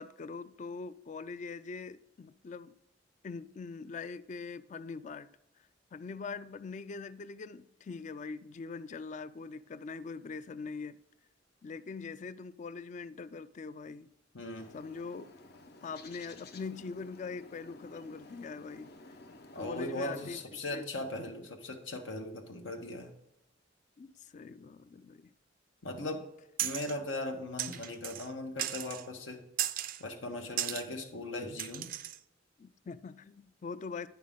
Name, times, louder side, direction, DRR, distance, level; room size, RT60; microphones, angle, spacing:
voice 1, 0.0-2.8 3.2-5.3 5.9-11.0 11.6-14.1 14.7-15.3 15.8-18.9 19.5-20.9 24.0-25.3 32.6-34.1, left 4 dB, 40° left, 0.3 m, -42 dB
voice 2, 14.3-14.7 19.5-23.1 25.8-26.3 26.6-29.5 30.0-31.9, left 2 dB, 85° left, 1.2 m, -39 dB
Bird, 14.5-20.5, left 2 dB, 55° left, 0.8 m, -53 dB
sound 1, 26.6-27.0 27.6-28.3 28.6-29.1 29.6-30.0 30.6-30.9 31.6-32.2, right 13 dB, 45° right, 0.3 m, -35 dB
9.4 x 5.8 x 3.6 m
head